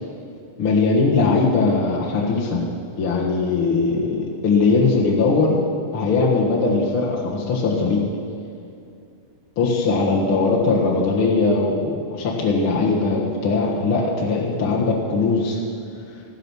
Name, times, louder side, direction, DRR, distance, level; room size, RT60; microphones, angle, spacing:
voice 1, 0.6-2.6 3.0-5.6 5.9-8.0 9.6-15.6, left 3 dB, 55° left, -4 dB, 1.6 m, -20 dB
15.0 x 11.0 x 6.2 m, 2.4 s
omnidirectional pair, 4.3 m